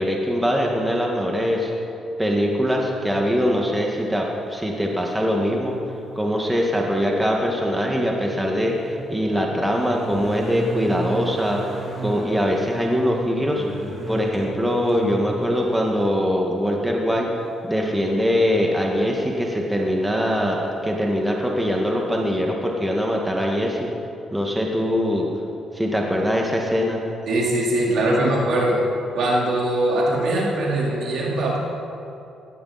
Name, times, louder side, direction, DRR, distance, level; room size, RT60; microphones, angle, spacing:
voice 1, 0.0-1.7 2.2-5.7 6.1-11.6 12.0-13.6 14.1-17.3 17.6-23.9 24.3-25.3 25.7-27.0, equal, 10° right, 0 dB, 1.8 m, -22 dB
sound 1, 6.0-6.1 8.3-16.0 17.2-17.3 17.7-17.8, right 2 dB, 30° right, 3.4 m, -34 dB
voice 2, 27.3-28.8 29.2-31.6, right 1 dB, 70° right, -4 dB, 3.8 m, -21 dB
17.0 x 13.5 x 4.2 m, 2.7 s
cardioid pair, 90°, 0 cm